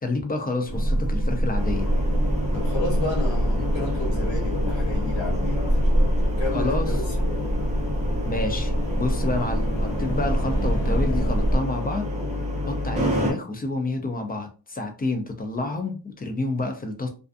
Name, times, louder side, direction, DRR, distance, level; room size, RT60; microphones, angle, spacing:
voice 1, 0.0-1.9 6.5-6.9 8.2-12.1 12.7-17.1, left 2 dB, 25° left, 0.3 m, -29 dB
sound 1, 0.7-11.6, right 1 dB, 40° left, 1.0 m, -25 dB
sound 2, 1.6-13.3, left 1 dB, 15° right, 0.7 m, -29 dB
voice 2, 2.5-5.6 6.4-7.6, left 2 dB, 85° left, 1.3 m, -31 dB
2.4 x 2.4 x 2.4 m
wide cardioid pair, 140°, 43 cm